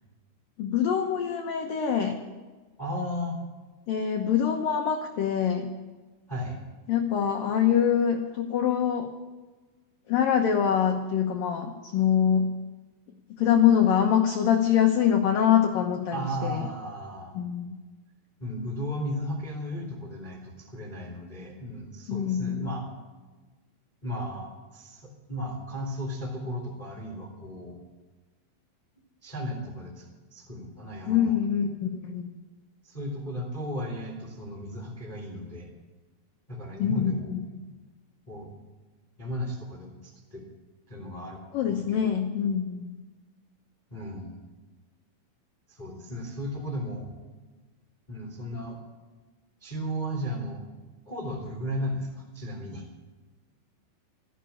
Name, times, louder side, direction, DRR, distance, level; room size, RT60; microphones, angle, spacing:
voice 1, 0.6-2.2 3.9-5.7 6.9-9.1 10.1-12.5 13.4-16.6 17.3-17.8 22.1-22.7 31.1-32.3 36.8-37.4 41.5-42.8, left 8 dB, 80° left, 3 dB, 2.0 m, -24 dB
voice 2, 2.8-3.4 6.3-6.6 16.1-17.3 18.4-22.8 24.0-27.8 29.2-30.0 30.3-31.3 32.8-35.7 36.5-37.3 38.3-38.5 39.2-40.4 40.9-41.4 41.7-42.1 43.9-44.3 45.7-47.2 48.1-48.8 49.6-50.6 51.0-52.8, equal, 15° left, 0 dB, 1.6 m, -35 dB
14.5 x 12.0 x 8.5 m, 1.3 s
omnidirectional pair, 5.5 m